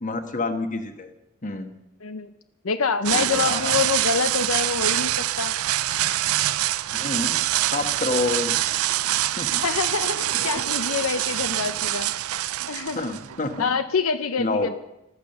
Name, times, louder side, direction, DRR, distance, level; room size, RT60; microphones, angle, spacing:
voice 1, 0.0-1.1 1.4-1.7 3.1-3.7 6.9-7.4 7.7-8.5 9.4-9.5 12.9-13.7 14.4-14.7, left 3 dB, 35° left, 7 dB, 1.4 m, -28 dB
voice 2, 2.0-2.3 2.6-5.5 9.5-12.1 12.7-13.0 13.6-14.8, left 5 dB, 75° left, 10 dB, 0.7 m, -26 dB
sound 1, 3.1-13.7, right 13 dB, 85° right, 0.5 m, -25 dB
14.5 x 12.5 x 6.7 m, 0.90 s
head